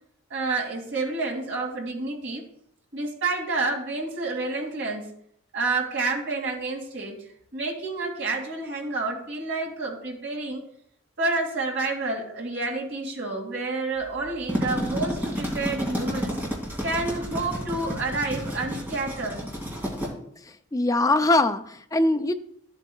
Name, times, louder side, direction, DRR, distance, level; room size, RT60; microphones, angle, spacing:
voice 1, 0.3-2.4 2.9-5.1 5.5-7.2 7.5-10.6 11.2-16.4 16.8-19.5, right 3 dB, 55° right, -1 dB, 2.5 m, -29 dB
sound 1, 14.3-20.1, equal, 10° right, 2.4 m, -31 dB
voice 2, 20.4-22.3, left 2 dB, 15° left, 6 dB, 0.4 m, -22 dB
13.5 x 8.1 x 2.3 m, 0.69 s
head